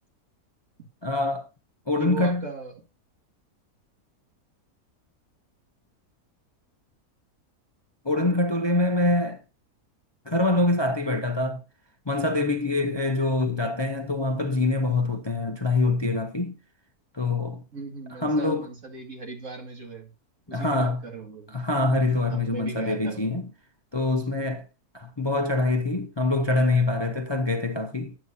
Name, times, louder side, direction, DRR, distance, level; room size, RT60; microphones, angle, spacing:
voice 1, 1.0-1.5 1.9-2.5 8.0-9.4 10.3-11.6 12.1-16.6 17.1-17.6 18.2-18.7 20.5-21.0 21.5-23.5 23.9-24.6 24.9-28.1, left 2 dB, 30° left, 0.4 m, -25 dB
voice 2, 2.0-2.8 17.7-20.1 20.5-21.6 22.3-23.3, right 4 dB, 55° right, 2.4 m, -37 dB
11.0 x 8.8 x 2.7 m
omnidirectional pair, 1.6 m